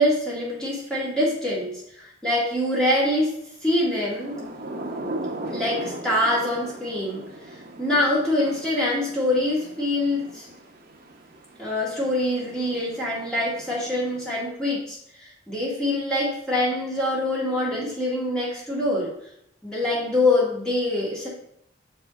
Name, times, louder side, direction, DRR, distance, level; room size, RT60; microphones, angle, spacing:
voice 1, 0.0-3.3 3.6-4.4 5.5-7.2 7.5-10.6 11.6-19.1 19.6-21.3, left 1 dB, 5° left, -7 dB, 1.9 m, -25 dB
Thunder / Rain, 3.9-14.5, right 1 dB, 50° right, 0.9 m, -38 dB
6.8 x 4.8 x 3.6 m, 0.73 s
head